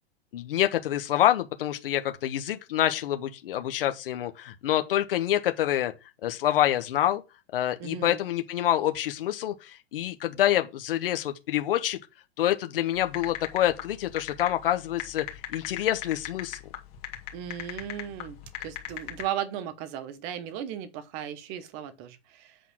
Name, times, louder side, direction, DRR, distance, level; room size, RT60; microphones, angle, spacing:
voice 1, 0.3-5.9 6.2-7.2 7.5-12.0 12.4-15.2 15.5-16.6, left 12 dB, 60° left, 1.2 m, -26 dB
voice 2, 7.8-8.2 17.3-22.6, right 10 dB, 20° right, 0.9 m, -36 dB
sound 1, 12.9-19.2, left 13 dB, 35° left, 2.2 m, -37 dB
8.3 x 3.9 x 6.1 m
supercardioid pair, 175°, 32 cm